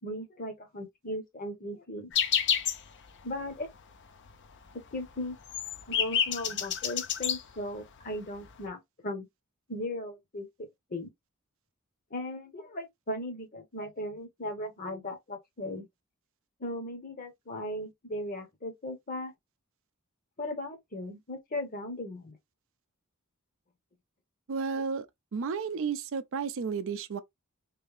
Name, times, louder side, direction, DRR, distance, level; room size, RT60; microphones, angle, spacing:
voice 1, 0.0-2.1 3.2-3.7 4.9-5.4 5.9-9.3 9.7-10.5 10.9-11.1 12.1-15.9 16.6-19.3 20.4-22.4 24.7-24.8, left 1 dB, 40° left, 1.0 m, -37 dB
sound 1, 2.1-2.9 3.2-3.3 3.6-3.9 4.2-4.3 4.7-7.4 8.2-8.3 8.4-8.7, left 8 dB, 55° left, 0.6 m, -29 dB
voice 2, 24.5-25.1 25.3-27.2, right 5 dB, 60° right, 0.4 m, -32 dB
3.3 x 2.7 x 3.2 m
head